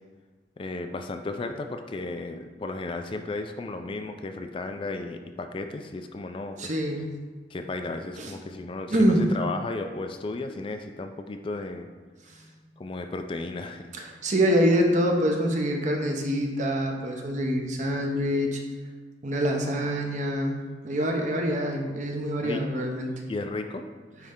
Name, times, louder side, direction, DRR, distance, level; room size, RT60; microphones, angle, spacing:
voice 1, 0.6-6.8 7.5-11.9 12.8-13.8 22.4-22.6 23.3-23.8, left 3 dB, 30° left, 6 dB, 0.3 m, -34 dB
voice 2, 6.6-7.2 8.2-8.3 8.9-9.3 12.3-12.4 14.0-18.6 19.2-23.1, equal, 45° right, 2 dB, 0.8 m, -25 dB
9.4 x 3.3 x 3.7 m, 1.5 s
head